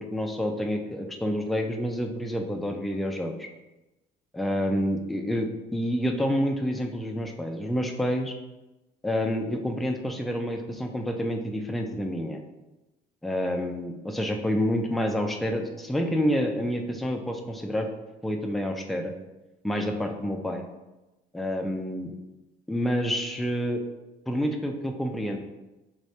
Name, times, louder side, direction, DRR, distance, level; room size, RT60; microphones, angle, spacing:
voice 1, 0.0-3.5 4.3-8.3 9.0-12.4 13.2-17.9 18.2-19.1 19.6-20.6 21.3-22.1 22.7-23.8 24.3-25.4, equal, ahead, 3 dB, 0.3 m, -28 dB
3.6 x 2.6 x 3.3 m, 1.0 s
cardioid pair, 110°, 17 cm